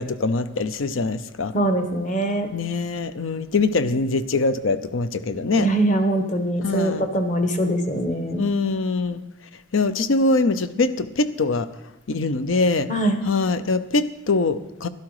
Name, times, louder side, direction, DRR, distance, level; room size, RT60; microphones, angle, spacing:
voice 1, 0.0-1.5 2.5-5.7 6.6-7.1 8.3-9.2 9.7-11.7 12.1-12.9 13.2-14.9, left 3 dB, 70° left, 13 dB, 0.6 m, -23 dB
voice 2, 1.5-2.5 5.6-8.5 12.9-13.2, right 1 dB, 40° left, 7 dB, 1.1 m, -22 dB
12.5 x 11.5 x 4.8 m, 0.96 s
head